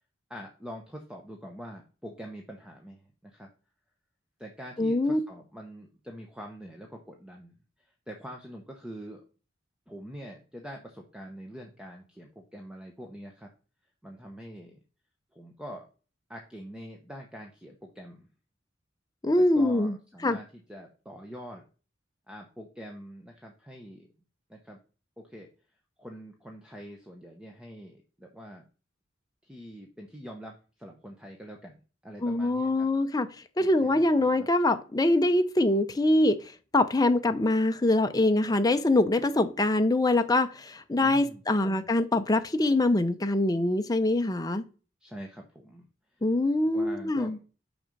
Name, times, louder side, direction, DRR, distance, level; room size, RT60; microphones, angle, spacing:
voice 1, 0.3-3.5 4.4-7.5 7.8-9.2 9.9-13.5 14.0-14.8 15.3-15.9 16.3-18.3 19.4-21.6 22.3-24.1 24.5-24.8 25.2-25.5 26.0-28.6 29.4-32.9 33.6-34.5 41.0-41.9 45.0-45.9 46.1-46.2 46.7-47.4, equal, 5° right, 0.9 m, -44 dB
voice 2, 4.8-5.2 19.2-20.0 20.2-20.4 32.2-33.3 33.6-36.4 36.7-44.6 46.2-47.4, left 2 dB, 20° left, 0.6 m, -24 dB
6.0 x 5.1 x 5.3 m
head